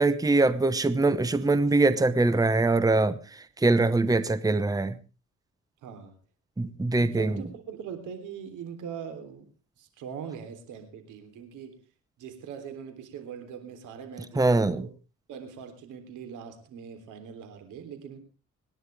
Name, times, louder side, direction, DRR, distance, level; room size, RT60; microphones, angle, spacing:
voice 1, 0.0-3.2 3.6-4.9 6.6-7.3 14.4-14.8, right 2 dB, 10° right, 15 dB, 1.0 m, -23 dB
voice 2, 5.8-6.2 6.6-9.5 9.8-11.8 12.2-14.9 15.3-18.2, right 7 dB, 90° right, 8 dB, 3.5 m, -41 dB
26.0 x 10.5 x 3.5 m, 0.32 s
cardioid pair, 90°, 30 cm